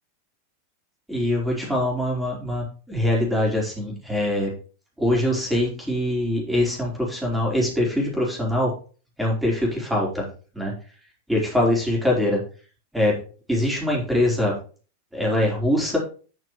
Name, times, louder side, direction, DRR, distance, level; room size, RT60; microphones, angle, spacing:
voice 1, 1.1-4.5 5.0-8.7 9.2-10.2 10.5-10.7 11.3-12.4 12.9-13.2 13.5-14.5 15.1-16.0, left 1 dB, 5° right, -2 dB, 4.4 m, -23 dB
12.0 x 6.5 x 3.2 m, 0.37 s
figure-of-eight pair, 90°, 0 cm